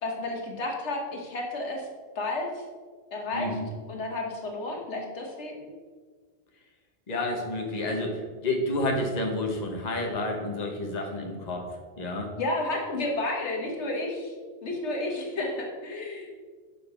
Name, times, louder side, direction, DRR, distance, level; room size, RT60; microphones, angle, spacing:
voice 1, 0.0-1.9 2.1-2.6 3.1-3.5 3.9-5.7 12.4-14.3 14.6-16.3, left 2 dB, 80° left, 1 dB, 1.5 m, -31 dB
voice 2, 3.3-3.6 7.1-11.7 12.0-12.3, left 2 dB, 40° left, 1 dB, 1.1 m, -30 dB
6.6 x 5.3 x 5.4 m, 1.5 s
omnidirectional pair, 1.2 m